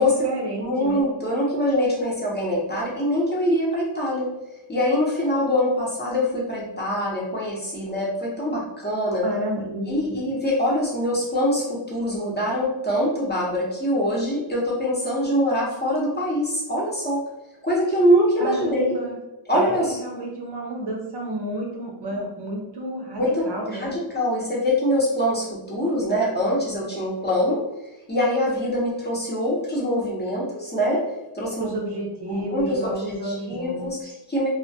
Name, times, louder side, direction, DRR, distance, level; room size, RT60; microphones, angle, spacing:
voice 1, 0.0-1.0 9.2-10.2 18.4-19.2 19.5-23.9 31.6-34.1, right 1 dB, 55° right, 0 dB, 0.7 m, -31 dB
voice 2, 0.6-4.3 4.7-9.3 9.9-17.2 17.6-19.0 19.5-20.0 23.2-27.6 28.1-31.0 31.3-31.7 32.3-34.0 34.3-34.5, equal, 20° left, -5 dB, 0.7 m, -24 dB
2.2 x 2.1 x 2.6 m, 0.96 s
wide cardioid pair, 95°, 49 cm